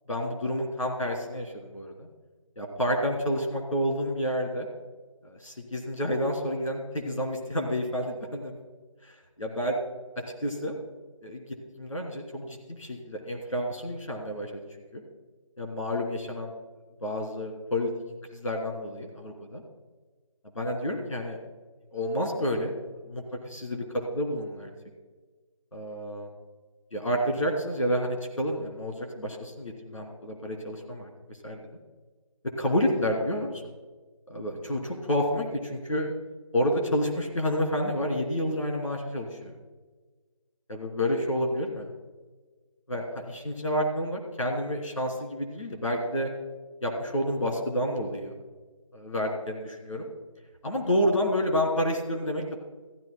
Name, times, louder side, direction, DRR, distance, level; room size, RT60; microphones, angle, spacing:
voice 1, 0.1-2.1 2.6-4.7 5.2-8.6 9.4-9.8 10.4-10.7 11.2-11.4 11.8-14.6 14.9-15.0 15.6-16.5 17.0-17.9 18.3-19.6 20.5-21.4 21.9-22.7 23.1-23.8 24.1-24.7 25.7-26.3 26.9-31.1 31.4-31.6 32.6-33.5 34.3-36.1 36.5-39.5 40.7-41.9 42.9-46.3 46.8-48.3 48.9-50.1 50.6-52.6, equal, 70° left, 1 dB, 2.9 m, -29 dB
15.0 x 14.0 x 2.2 m, 1.4 s
figure-of-eight pair, 160°, 17 cm